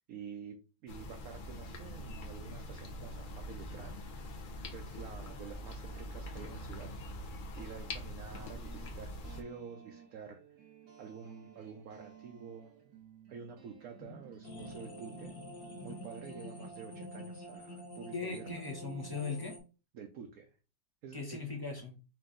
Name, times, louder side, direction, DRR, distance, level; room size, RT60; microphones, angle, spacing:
voice 1, 0.1-0.6 0.8-4.2 4.7-10.4 11.0-12.7 13.3-15.4 15.8-18.6 19.9-20.6 21.0-21.4, right 6 dB, 70° right, 3 dB, 1.0 m, -49 dB
sound 1, 0.9-9.4, left 1 dB, 65° left, 0.5 m, -44 dB
sound 2, 8.4-16.7, right 8 dB, 90° right, 1.4 m, -56 dB
sound 3, 14.4-19.6, equal, 45° left, 1.1 m, -46 dB
voice 2, 18.1-19.6 21.1-22.0, left 4 dB, 20° left, 0 dB, 0.6 m, -39 dB
4.7 x 2.7 x 3.7 m, 0.33 s
omnidirectional pair, 1.7 m